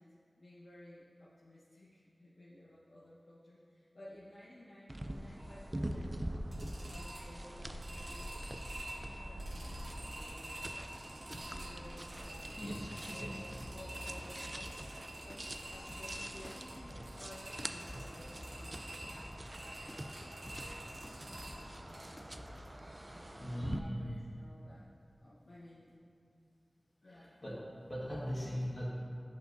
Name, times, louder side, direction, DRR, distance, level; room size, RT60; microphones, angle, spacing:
voice 1, 0.0-6.2 6.6-10.8 11.2-12.6 13.0-21.2 21.7-22.2 23.0-24.9 25.2-26.0 27.0-27.3, left 1 dB, 85° left, -9 dB, 1.0 m, -56 dB
sound 1, 4.9-23.8, right 1 dB, 35° right, 0.4 m, -46 dB
sound 2, 5.4-22.1, right 1 dB, 90° right, 1.2 m, -47 dB
voice 2, 12.6-13.4 22.6-24.2 27.0-28.9, equal, 50° left, -7 dB, 1.4 m, -41 dB
sound 3, 13.6-22.7, left 1 dB, 20° left, 0.5 m, -53 dB
10.0 x 5.3 x 2.6 m, 2.4 s
wide cardioid pair, 50°, 0 cm